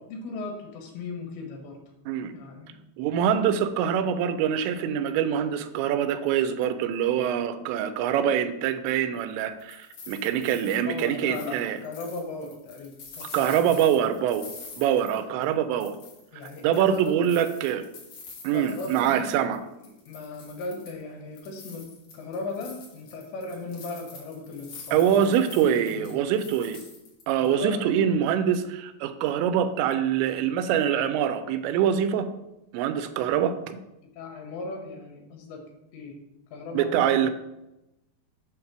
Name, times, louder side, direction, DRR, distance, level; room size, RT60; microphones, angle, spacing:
voice 1, 0.1-1.8 2.2-2.8 7.2-7.3 10.5-13.8 15.2-15.4 16.3-17.1 18.5-19.3 20.1-21.9 22.1-25.2 25.5-26.2 27.4-27.9 34.2-36.2 36.5-37.3, left 3 dB, 85° left, 3 dB, 3.4 m, -37 dB
voice 2, 3.0-11.8 13.2-14.5 14.8-16.0 16.6-17.8 18.4-19.6 24.9-26.8 27.3-32.3 32.7-33.8 36.7-37.3, right 9 dB, 90° right, 10 dB, 2.9 m, -24 dB
sound 1, 9.4-15.5 15.8-19.6 19.8-21.0 21.4-27.5, left 4 dB, 60° left, 2.5 m, -46 dB
7.9 x 3.3 x 5.9 m, 0.92 s
omnidirectional pair, 5.0 m